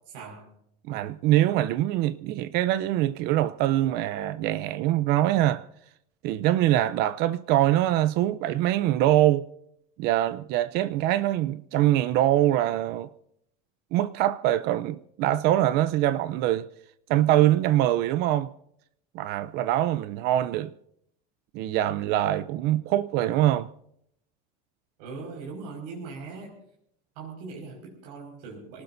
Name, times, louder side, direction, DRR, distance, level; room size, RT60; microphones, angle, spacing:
voice 1, 0.1-0.5 25.0-26.6 27.2-28.8, right 4 dB, 85° right, 5.5 m, -40 dB
voice 2, 0.9-5.6 6.2-9.4 10.0-13.1 13.9-16.7 17.1-18.5 19.1-20.7 21.5-23.7, right 13 dB, 55° right, 0.6 m, -23 dB
27.5 x 19.0 x 2.7 m
supercardioid pair, 145°, 20 cm